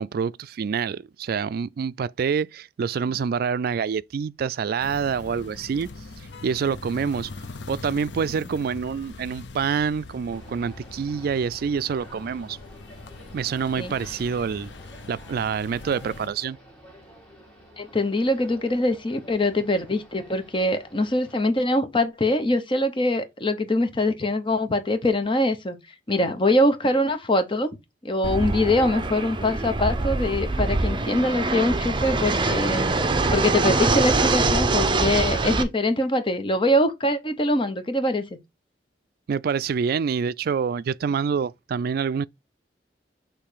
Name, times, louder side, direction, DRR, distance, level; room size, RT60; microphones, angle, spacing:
voice 1, 0.0-5.9 6.2-7.3 7.7-12.6 13.3-14.7 15.1-16.6 39.3-42.3, right 6 dB, 60° right, 0.3 m, -26 dB
sound 1, 4.8-16.3, left 3 dB, 85° left, 0.7 m, -42 dB
sound 2, 10.3-21.4, equal, 5° left, 2.4 m, -50 dB
voice 2, 17.8-25.8 26.1-27.7 28.0-32.9 33.3-38.3, left 1 dB, 30° left, 1.0 m, -23 dB
Fixed-wing aircraft airplane, 28.2-35.6, right 3 dB, 30° right, 0.7 m, -24 dB
6.6 x 3.2 x 5.0 m
head